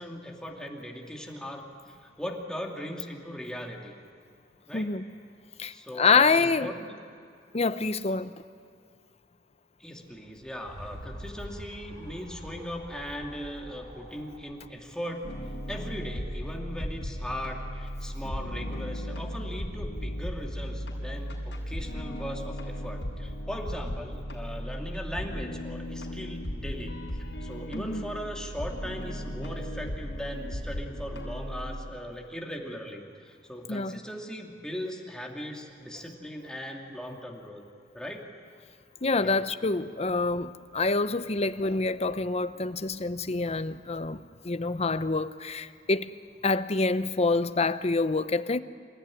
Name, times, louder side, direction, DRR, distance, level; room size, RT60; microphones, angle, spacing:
voice 1, 0.0-1.7 2.0-4.0 4.7-4.9 5.7-6.9 9.8-15.3 15.7-27.0 27.4-37.6 37.9-38.2 39.2-39.4, equal, 5° left, 0 dB, 2.4 m, -39 dB
voice 2, 4.7-5.0 5.6-6.7 7.5-8.3 27.7-28.0 33.7-34.0 39.0-46.1 46.4-48.6, left 3 dB, 35° left, 12 dB, 0.8 m, -26 dB
sound 1, 10.2-15.8, equal, 85° right, 5.2 m, -45 dB
sound 2, 15.2-31.8, equal, 75° left, 6.3 m, -36 dB
27.5 x 15.5 x 9.9 m, 2.4 s
head